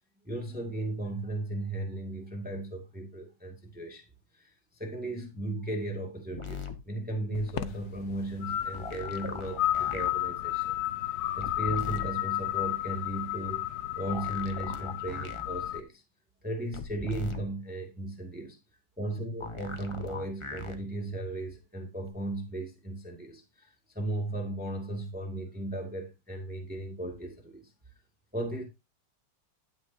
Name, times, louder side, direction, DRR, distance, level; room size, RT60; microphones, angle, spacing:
voice 1, 0.2-4.0 4.3-10.8 11.0-13.7 14.0-16.0 16.4-18.6 19.0-27.7 28.3-28.6, right 1 dB, 5° right, 1.9 m, -36 dB
sound 1, 6.4-6.8 8.7-10.1 11.4-12.1 14.1-15.4 16.7-17.4 19.4-20.8 22.1-22.2, left 4 dB, 25° left, 0.7 m, -40 dB
sound 2, 7.3-15.8, left 13 dB, 65° left, 1.1 m, -33 dB
12.0 x 8.5 x 2.7 m
omnidirectional pair, 2.1 m